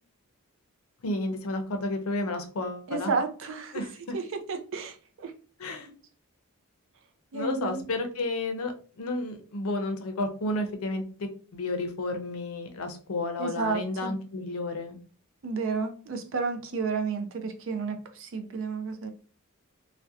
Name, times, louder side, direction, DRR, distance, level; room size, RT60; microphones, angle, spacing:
voice 1, 1.0-3.1 3.7-3.9 5.6-5.9 7.3-15.0, left 2 dB, 70° left, 6 dB, 0.5 m, -32 dB
voice 2, 2.9-3.8 4.1-5.3 7.3-7.8 13.4-14.2 15.4-19.1, right 4 dB, 60° right, 7 dB, 0.4 m, -31 dB
2.6 x 2.1 x 2.3 m, 0.39 s
head